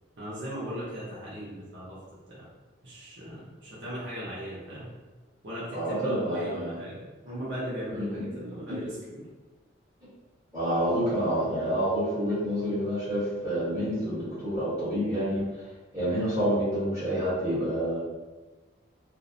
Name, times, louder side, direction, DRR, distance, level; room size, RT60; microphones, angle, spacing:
voice 1, 0.2-2.0 2.3-2.5 2.8-4.9 5.4-9.2, equal, 65° right, -8 dB, 0.7 m, -38 dB
voice 2, 5.7-6.7 8.0-8.3 8.7-8.8 10.5-15.4 15.9-18.0, equal, 15° right, -12 dB, 1.1 m, -28 dB
2.6 x 2.0 x 2.5 m, 1.3 s
head